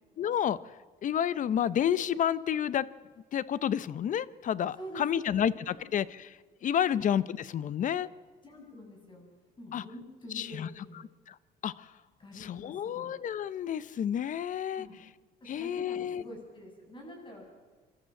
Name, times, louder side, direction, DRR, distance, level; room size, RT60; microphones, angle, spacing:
voice 1, 0.2-0.6 1.0-2.9 3.3-6.3 6.6-8.1 9.7-9.8 10.3-10.7 11.3-11.4 11.6-11.9 12.4-14.9 15.5-16.2, left 9 dB, 50° left, 18 dB, 0.8 m, -30 dB
voice 2, 4.8-5.3 5.7-5.8 6.9-7.0 8.4-9.2 9.6-11.0 12.2-13.1 14.7-14.9 15.4-17.5, equal, 30° left, 1 dB, 7.8 m, -46 dB
26.0 x 13.0 x 7.7 m, 1.5 s
cardioid pair, 110°, 17 cm